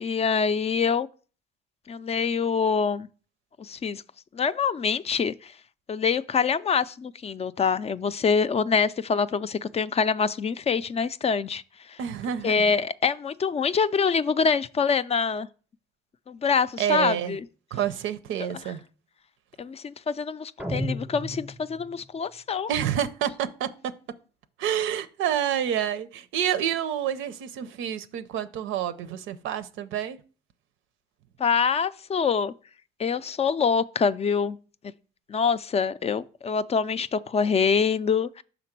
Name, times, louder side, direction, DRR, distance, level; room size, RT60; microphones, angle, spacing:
voice 1, 0.0-1.1 1.9-3.1 3.6-4.0 4.3-5.5 5.9-11.6 11.9-12.0 12.4-15.5 16.3-17.4 19.6-22.7 31.4-32.5 33.0-34.6 35.3-38.4, left 5 dB, 30° left, 0.4 m, -25 dB
voice 2, 12.0-12.7 16.8-17.4 17.7-18.8 22.7-23.7 24.6-30.2, right 10 dB, 90° right, 0.6 m, -28 dB
sound 1, 20.6-22.1, equal, 5° right, 0.7 m, -33 dB
6.0 x 3.8 x 5.9 m
cardioid pair, 90°, 20 cm